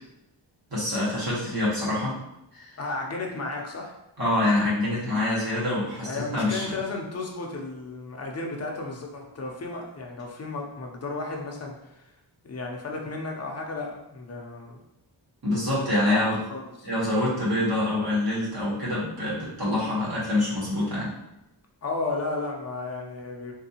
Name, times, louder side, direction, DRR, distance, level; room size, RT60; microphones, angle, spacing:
voice 1, 0.7-2.2 2.5-2.7 4.2-6.7 15.4-16.4 16.8-21.1, left 1 dB, 55° right, -7 dB, 1.4 m, -26 dB
voice 2, 2.8-4.0 6.0-12.1 12.4-14.8 15.7-17.1 21.8-23.5, left 3 dB, 35° left, 0 dB, 0.5 m, -34 dB
3.6 x 2.7 x 2.8 m, 0.89 s
wide cardioid pair, 180°, 44 cm